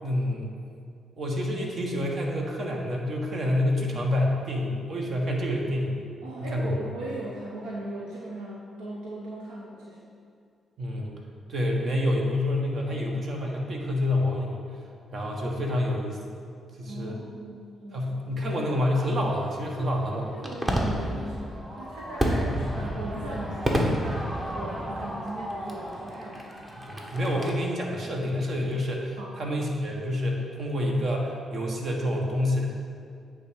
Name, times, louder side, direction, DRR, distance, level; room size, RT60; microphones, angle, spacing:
voice 1, 0.0-0.5 1.2-6.0 6.4-6.9 10.8-11.1 11.5-14.8 15.1-16.2 16.8-17.2 17.9-20.4 26.8-32.7, left 1 dB, 55° right, 0 dB, 1.4 m, -28 dB
voice 2, 6.2-10.2 16.8-18.3 20.3-26.5 29.2-29.4, right 1 dB, 75° right, -4 dB, 0.8 m, -38 dB
Fireworks, 19.2-27.5, equal, 30° right, 1.5 m, -31 dB
8.6 x 3.8 x 6.4 m, 2.3 s
hypercardioid pair, 40°, 0 cm